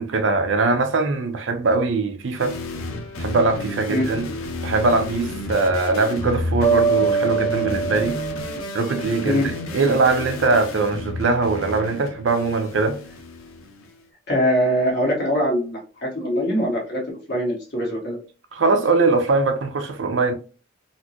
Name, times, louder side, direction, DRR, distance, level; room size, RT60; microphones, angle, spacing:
voice 1, 0.0-2.5 3.2-4.3 4.6-8.2 8.7-9.4 9.7-13.0 18.5-20.3, right 3 dB, 60° right, 0.5 m, -21 dB
sound 1, 2.4-13.9, left 2 dB, 80° left, 0.7 m, -32 dB
sound 2, 6.6-9.7, right 5 dB, 15° left, 0.4 m, -24 dB
voice 2, 14.3-18.2, equal, 50° left, 1.4 m, -22 dB
4.1 x 2.0 x 2.8 m
head